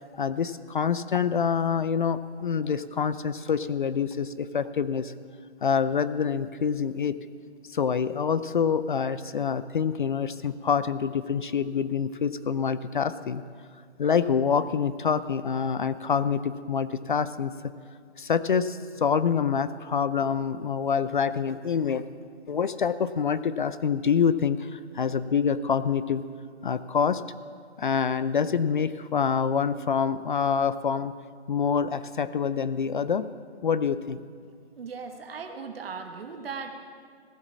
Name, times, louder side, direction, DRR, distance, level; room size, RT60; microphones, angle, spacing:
voice 1, 0.1-5.1 5.6-7.2 7.7-13.4 14.0-17.7 18.2-22.0 22.5-26.2 26.6-27.2 27.8-31.1 31.5-33.3 33.6-34.2, left 6 dB, 50° left, 14 dB, 0.4 m, -26 dB
voice 2, 34.8-36.7, right 5 dB, 60° right, 5 dB, 1.4 m, -38 dB
16.5 x 8.2 x 7.3 m, 2.1 s
hypercardioid pair, 160°, 33 cm